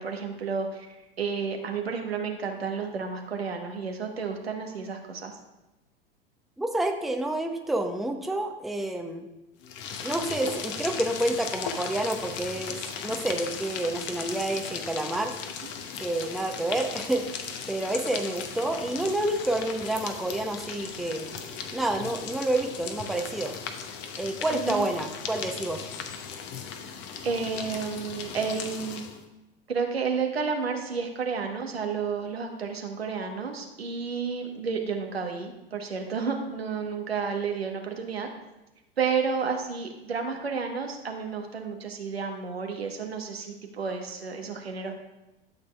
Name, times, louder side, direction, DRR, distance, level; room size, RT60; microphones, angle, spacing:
voice 1, 0.0-5.3 24.5-24.8 27.2-29.1 29.7-38.3 39.0-44.9, right 5 dB, 85° right, 3 dB, 1.2 m, -31 dB
voice 2, 6.6-9.3 10.0-15.3 16.0-17.2 17.7-21.4 21.7-23.5 24.2-25.9, right 1 dB, ahead, 4 dB, 0.6 m, -29 dB
sound 1, 9.6-29.2, left 7 dB, 40° left, 0.9 m, -37 dB
12.0 x 6.6 x 2.3 m, 0.98 s
hypercardioid pair, 95°, 30 cm